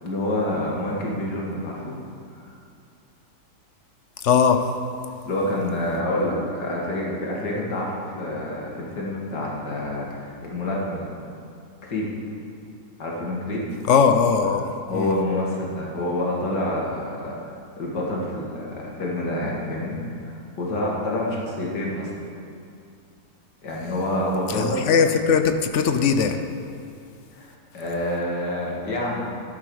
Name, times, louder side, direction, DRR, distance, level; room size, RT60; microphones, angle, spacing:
voice 1, 0.0-2.0 2.3-2.5 5.2-11.1 11.9-12.1 13.0-13.7 14.9-22.1 23.6-24.8 27.3-29.3, left 1 dB, 90° left, -4 dB, 2.6 m, -27 dB
voice 2, 4.2-4.7 13.9-15.1 24.5-26.4, left 6 dB, 60° left, 8 dB, 0.9 m, -20 dB
12.0 x 12.0 x 4.8 m, 2.5 s
omnidirectional pair, 1.8 m